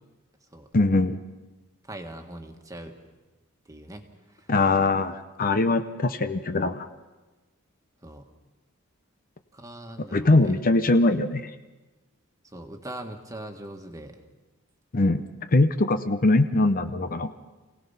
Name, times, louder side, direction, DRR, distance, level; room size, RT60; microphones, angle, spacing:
voice 1, 0.7-1.2 4.5-6.9 10.1-11.5 14.9-15.2 15.5-17.3, left 2 dB, 40° left, 9 dB, 0.7 m, -22 dB
voice 2, 1.9-2.9 3.7-4.0 4.3-4.5 8.0-8.3 9.5-10.6 12.5-14.1, right 1 dB, 15° right, 4 dB, 1.6 m, -41 dB
27.0 x 17.5 x 5.7 m, 1.2 s
head